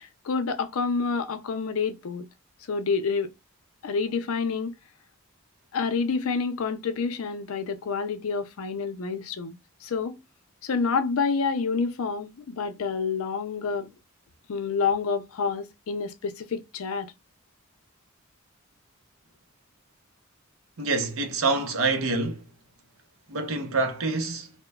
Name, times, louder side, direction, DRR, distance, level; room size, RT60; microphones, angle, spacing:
voice 1, 0.0-2.3 2.7-3.3 3.8-4.7 5.7-10.2 10.6-13.9 14.5-17.1, left 5 dB, 75° left, 0.5 m, -28 dB
voice 2, 20.8-22.5 23.3-24.5, right 3 dB, 70° right, 0.6 m, -26 dB
2.9 x 2.1 x 2.3 m
head